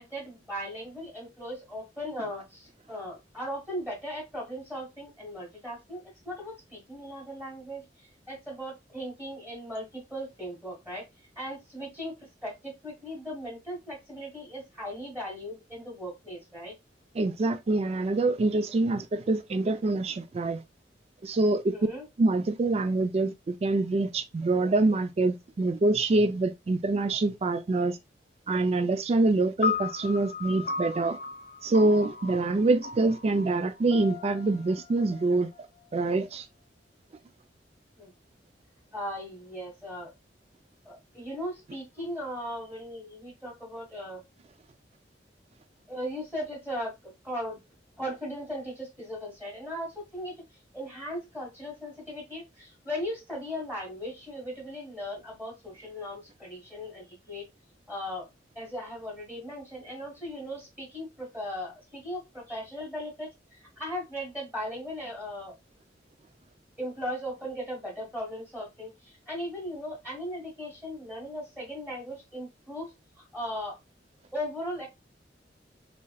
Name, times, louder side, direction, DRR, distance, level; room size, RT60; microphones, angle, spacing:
voice 1, 0.0-7.8 8.3-11.1 11.4-16.8 21.7-22.1 38.0-38.1 38.9-40.1 40.9-44.2 45.9-47.6 48.0-57.5 57.9-58.3 58.6-65.5 66.8-72.9 73.2-73.8 74.3-74.9, equal, 10° right, 1.7 m, -38 dB
voice 2, 17.2-20.6 21.2-21.7 22.2-28.0 28.5-31.2 31.6-35.5 35.9-36.5, right 2 dB, 35° right, 0.4 m, -25 dB
sound 1, 29.6-36.1, left 5 dB, 50° left, 0.5 m, -36 dB
3.6 x 3.4 x 2.3 m
head